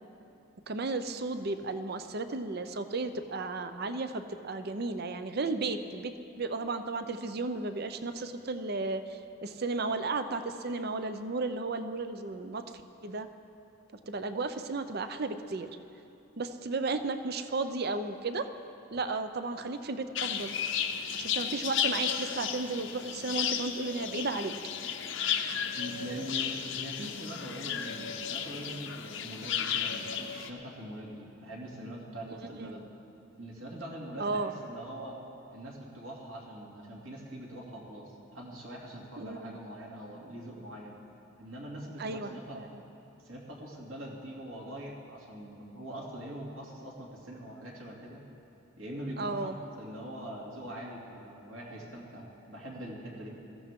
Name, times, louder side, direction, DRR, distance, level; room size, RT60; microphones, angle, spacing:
voice 1, 0.7-12.7 13.0-13.3 14.1-15.8 16.4-18.5 18.9-20.6 21.1-24.5 32.5-32.7 34.2-34.5 39.2-39.6 42.0-42.8 49.2-49.6, right 3 dB, 50° right, 9 dB, 0.6 m, -34 dB
sound 1, 20.1-30.5, left 8 dB, 60° left, 0.7 m, -34 dB
voice 2, 25.7-32.8 33.4-35.2 35.5-40.9 41.4-42.6 43.2-48.2 48.8-53.3, right 1 dB, 70° right, -3 dB, 2.7 m, -43 dB
21.5 x 14.5 x 3.7 m, 2.8 s
head